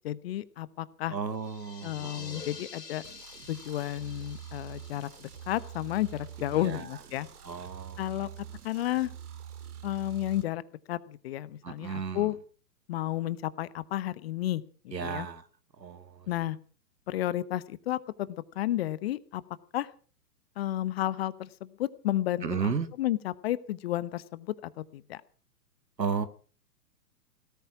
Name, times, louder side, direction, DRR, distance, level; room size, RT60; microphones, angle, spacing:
voice 1, 0.0-1.1 1.8-3.0 3.5-7.3 8.0-8.3 8.6-9.1 9.8-10.6 10.9-12.4 12.9-15.3 16.3-16.6 17.1-19.4 19.7-19.9 20.6-22.7 23.0-25.2, left 14 dB, 35° left, 17 dB, 1.0 m, -32 dB
voice 2, 1.1-2.6 6.6-6.9 7.4-8.3 11.6-12.3 14.9-15.4 15.8-16.3 22.4-22.9 26.0-26.3, right 6 dB, 80° right, 13 dB, 1.9 m, -34 dB
sound 1, 1.3-6.9, left 5 dB, 75° left, 3.2 m, -49 dB
sound 2, 3.0-10.4, right 9 dB, 60° right, 2.7 m, -45 dB
17.5 x 13.0 x 6.0 m, 0.41 s
figure-of-eight pair, 120°, 50 cm